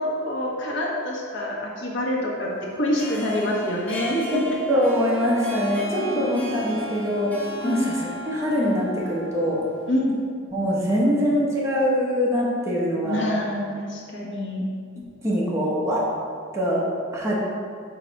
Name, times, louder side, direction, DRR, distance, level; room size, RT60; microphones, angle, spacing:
voice 1, 0.0-4.2 4.5-4.6 5.9-6.4 7.6-7.9 9.9-10.2 13.0-14.6, left 1 dB, 65° left, -3 dB, 1.3 m, -26 dB
Harp, 2.8-10.1, left 1 dB, 5° left, 0.7 m, -36 dB
voice 2, 4.7-9.6 10.5-13.3 15.0-16.1 16.5-16.9 17.1-17.4, equal, 15° right, -6 dB, 1.0 m, -23 dB
4.9 x 3.9 x 5.8 m, 2.2 s
head